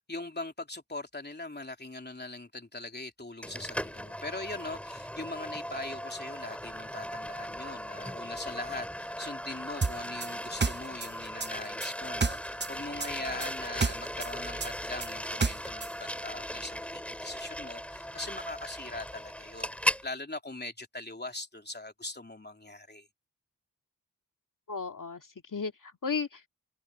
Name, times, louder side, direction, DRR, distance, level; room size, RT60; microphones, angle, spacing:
voice 1, 0.1-23.1, left 2 dB, 30° left, 3.2 m, -41 dB
sound 1, 3.4-20.1, equal, 5° left, 6.5 m, -38 dB
sound 2, 9.8-12.7 13.0-15.9, right 4 dB, 30° right, 0.9 m, -30 dB
voice 2, 13.0-13.4 24.7-26.5, left 5 dB, 60° left, 2.2 m, -36 dB
cardioid pair, 45°, 36 cm